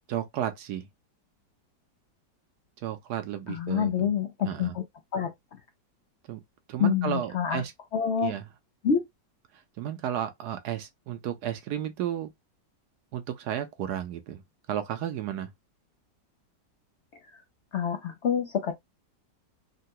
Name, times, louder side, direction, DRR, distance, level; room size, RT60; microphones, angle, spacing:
voice 1, 0.1-0.9 2.8-4.1 4.4-4.7 6.3-6.4 6.7-7.7 8.2-8.4 9.5-12.3 13.1-14.4 14.7-15.5, right 10 dB, 70° right, 1.0 m, -33 dB
voice 2, 3.5-4.8 5.1-5.3 6.8-7.6 7.9-8.4 8.8-9.1 17.3-17.4 17.7-18.7, left 7 dB, 90° left, 0.6 m, -27 dB
3.7 x 2.2 x 2.6 m
omnidirectional pair, 1.9 m